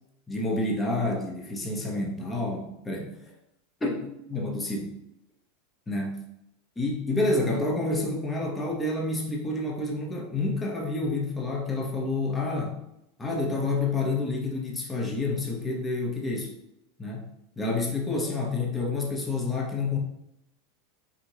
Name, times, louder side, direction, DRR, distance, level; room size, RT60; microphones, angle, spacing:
voice 1, 0.3-3.1 3.8-4.9 5.9-6.2 6.8-12.8 13.2-16.5 17.0-17.2 17.6-20.0, left 2 dB, 15° left, -1 dB, 1.0 m, -29 dB
4.6 x 2.5 x 2.8 m, 0.83 s
hypercardioid pair, 115°, 0 cm